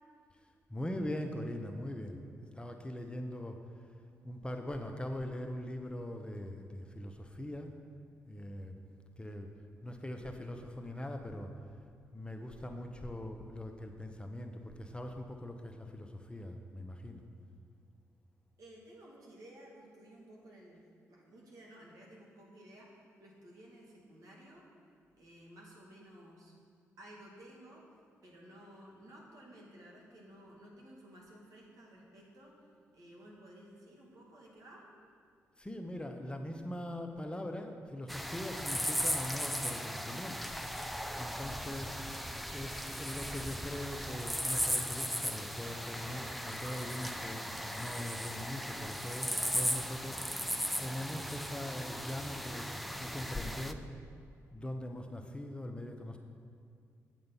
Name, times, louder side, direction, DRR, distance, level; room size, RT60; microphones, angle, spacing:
voice 1, 0.7-2.3 2.5-3.6 4.2-7.7 8.2-8.8 9.2-9.5 9.8-11.5 12.1-17.2 35.6-40.5 41.2-42.0 42.5-53.8 54.5-56.2, left 1 dB, 15° left, 4 dB, 0.9 m, -41 dB
voice 2, 18.6-24.6 25.2-26.5 27.0-27.8 28.2-32.5 32.9-34.8, right 1 dB, 70° right, -3 dB, 2.2 m, -55 dB
sound 1, 38.1-53.7, equal, ahead, 0.5 m, -37 dB
8.1 x 7.5 x 5.5 m, 2.3 s
supercardioid pair, 50°, 6 cm